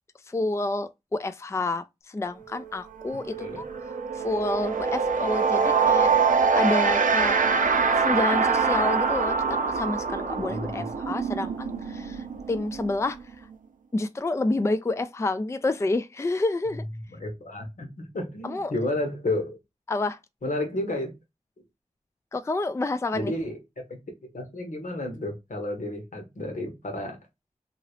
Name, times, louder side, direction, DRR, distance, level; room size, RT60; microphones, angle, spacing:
voice 1, 0.3-6.1 6.5-7.4 8.0-13.5 13.9-16.8 18.4-18.7 19.9-20.2 22.3-23.3, left 2 dB, 20° left, 0.3 m, -29 dB
sound 1, 2.5-2.7 3.0-13.6, right 5 dB, 90° right, 0.5 m, -24 dB
voice 2, 10.5-10.9 17.1-19.6 20.4-21.1 23.1-23.6 24.2-27.2, left 1 dB, 80° left, 1.2 m, -31 dB
2.9 x 2.8 x 2.9 m
wide cardioid pair, 50°, 13 cm